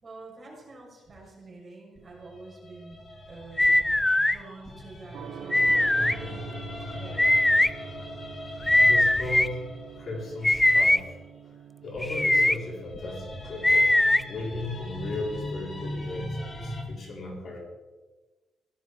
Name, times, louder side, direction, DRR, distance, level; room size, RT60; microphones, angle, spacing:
voice 1, 0.0-3.0 3.3-3.9 4.2-7.4, right 2 dB, 30° right, -3 dB, 6.5 m, -47 dB
sound 1, 2.0-11.1 12.0-16.8, left 1 dB, 25° left, 2.8 m, -40 dB
sound 2, 3.6-4.4 5.5-6.1 7.2-7.7 8.7-9.5 10.4-11.0 12.0-12.6 13.6-14.2, left 1 dB, 10° left, 0.4 m, -20 dB
Gong, 5.1-16.0, right 8 dB, 85° right, 1.3 m, -46 dB
voice 2, 8.8-9.7 9.9-11.2 11.8-14.0 14.2-17.6, left 2 dB, 45° left, -2 dB, 4.1 m, -36 dB
17.0 x 13.0 x 4.8 m, 1.2 s
cardioid pair, 140°, 0 cm